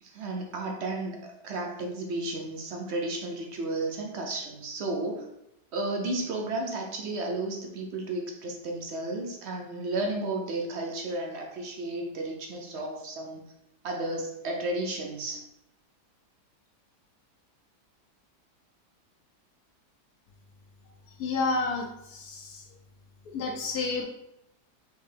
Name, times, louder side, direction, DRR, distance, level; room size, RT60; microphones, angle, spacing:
voice 1, 0.0-5.3 5.7-13.4 13.8-15.4, right 2 dB, 60° right, 1 dB, 0.7 m, -33 dB
voice 2, 21.2-22.6 23.3-24.0, left 3 dB, 70° left, 1 dB, 1.2 m, -30 dB
4.7 x 3.3 x 3.3 m, 0.81 s
omnidirectional pair, 1.8 m